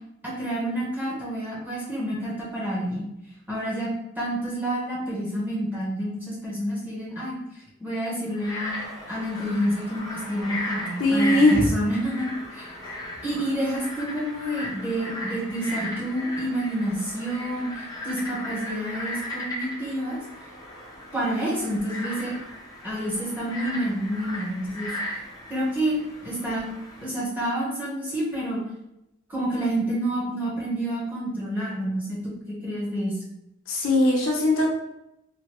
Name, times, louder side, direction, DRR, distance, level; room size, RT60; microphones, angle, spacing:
voice 1, 0.2-3.1 3.5-3.9 4.2-7.3 7.8-8.7 9.1-12.7 13.2-20.2 21.1-22.3 22.8-24.9 25.5-26.7 27.0-28.6 29.3-32.2 32.5-33.2, right 1 dB, 10° right, -7 dB, 0.9 m, -28 dB
Frog, 8.3-27.1, left 1 dB, 20° left, 0.5 m, -37 dB
voice 2, 11.0-11.7 12.8-12.9 33.7-34.7, left 1 dB, 85° left, -1 dB, 0.8 m, -20 dB
2.9 x 2.2 x 3.0 m, 0.85 s
head